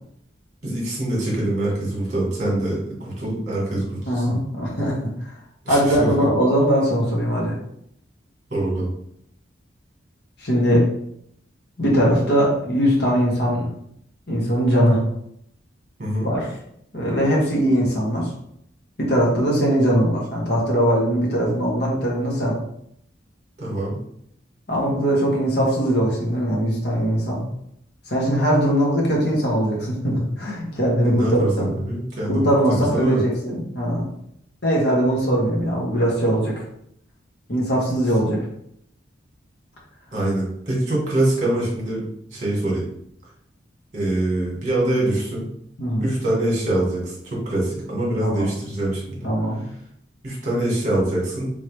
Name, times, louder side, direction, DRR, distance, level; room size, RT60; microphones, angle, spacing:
voice 1, 0.6-4.3 5.6-6.0 8.5-8.9 16.0-16.3 23.6-23.9 31.0-33.2 40.1-42.8 43.9-45.4 46.0-49.3 50.2-51.5, right 1 dB, 40° right, -4 dB, 1.6 m, -24 dB
voice 2, 4.1-5.3 5.7-7.5 10.4-10.9 11.8-13.7 14.3-15.0 16.2-16.5 16.9-18.3 19.0-22.6 24.7-27.4 28.0-31.7 32.3-34.1 34.6-36.6 37.5-38.4 45.8-46.1 48.2-48.5 49.2-49.6, equal, 55° left, -3 dB, 1.4 m, -20 dB
3.7 x 3.3 x 3.2 m, 0.72 s
head